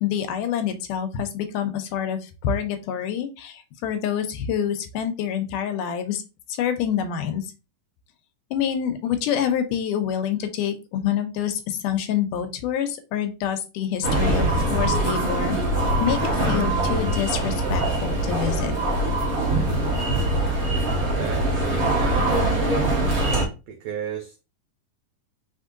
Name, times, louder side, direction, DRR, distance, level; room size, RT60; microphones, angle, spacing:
voice 1, 0.0-6.2 6.5-7.5 8.5-18.7, left 9 dB, 80° left, 7 dB, 2.1 m, -27 dB
sound 1, 14.0-23.5, right 1 dB, 60° right, 0.9 m, -23 dB
voice 2, 21.1-22.8 23.7-24.4, right 7 dB, 85° right, 3 dB, 1.4 m, -34 dB
5.0 x 3.6 x 2.5 m, 0.29 s
omnidirectional pair, 3.8 m